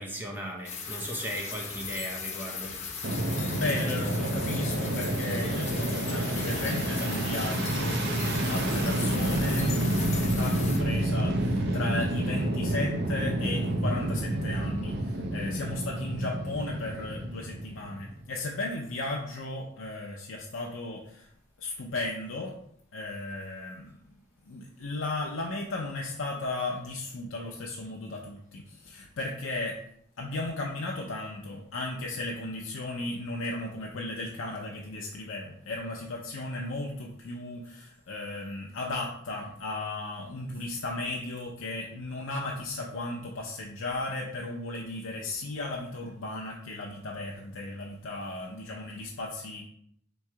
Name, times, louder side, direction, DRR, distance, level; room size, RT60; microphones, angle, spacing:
voice 1, 0.0-2.8, equal, 10° right, 0 dB, 0.6 m, -37 dB
sound 1, 0.6-10.8, left 5 dB, 35° left, 0.8 m, -38 dB
Fixed-wing aircraft airplane, 3.0-18.2, right 1 dB, 60° right, 0.6 m, -29 dB
voice 2, 3.5-21.3 21.6-22.6 22.9-24.0 24.5-29.8 30.2-49.6, left 2 dB, 80° left, -1 dB, 0.6 m, -35 dB
3.6 x 3.1 x 4.5 m, 0.69 s
head